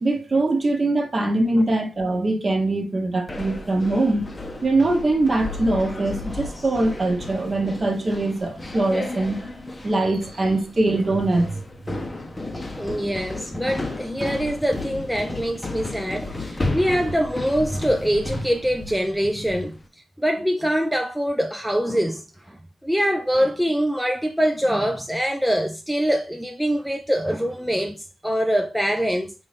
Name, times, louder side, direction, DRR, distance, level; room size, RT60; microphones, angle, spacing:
voice 1, 0.0-4.3 4.6-9.4 9.8-11.6, right 2 dB, 35° right, 1.0 m, -22 dB
sound 1, 3.3-19.8, left 2 dB, 25° left, 0.7 m, -33 dB
voice 2, 12.8-19.8 20.2-29.3, equal, ahead, 0.4 m, -24 dB
4.0 x 2.6 x 3.3 m
supercardioid pair, 50°, 0 cm